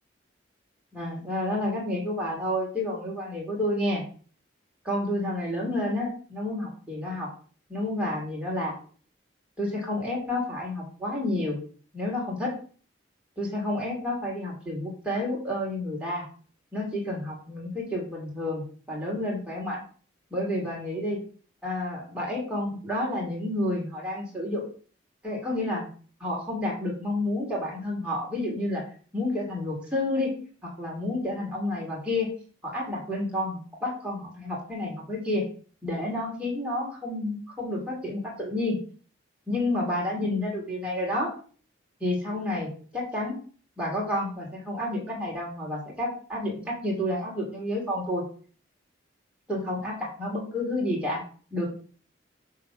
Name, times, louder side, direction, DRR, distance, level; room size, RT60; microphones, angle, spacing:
voice 1, 0.9-4.0 4.8-7.3 7.7-8.7 9.6-11.6 11.9-12.5 13.4-16.2 16.7-19.8 20.3-21.2 21.6-24.6 25.2-25.9 26.2-28.8 29.1-30.3 30.6-32.3 32.6-35.4 35.8-38.8 39.5-41.3 42.0-43.4 43.8-48.2 49.5-51.2 51.5-51.7, left 1 dB, 5° right, -5 dB, 3.2 m, -30 dB
7.5 x 4.2 x 6.1 m, 0.42 s
head